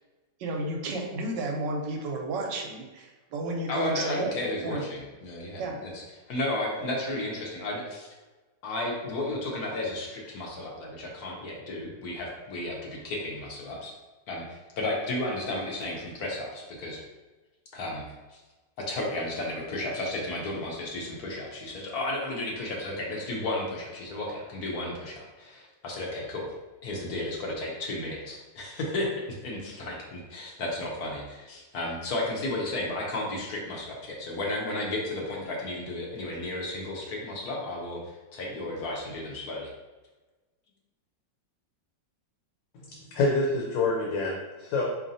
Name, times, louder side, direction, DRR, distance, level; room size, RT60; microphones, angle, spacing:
voice 1, 0.4-4.3 4.6-4.8 5.6-5.8, right 2 dB, 75° right, 1 dB, 1.2 m, -32 dB
voice 2, 3.7-6.0 6.3-8.1 8.6-13.9 14.3-17.0 17.7-18.0 18.8-26.5 26.8-39.7, left 1 dB, 65° left, -2 dB, 1.1 m, -33 dB
voice 3, 42.7-44.8, left 3 dB, 80° left, -2 dB, 1.3 m, -27 dB
4.1 x 3.1 x 2.6 m, 1.2 s
omnidirectional pair, 2.0 m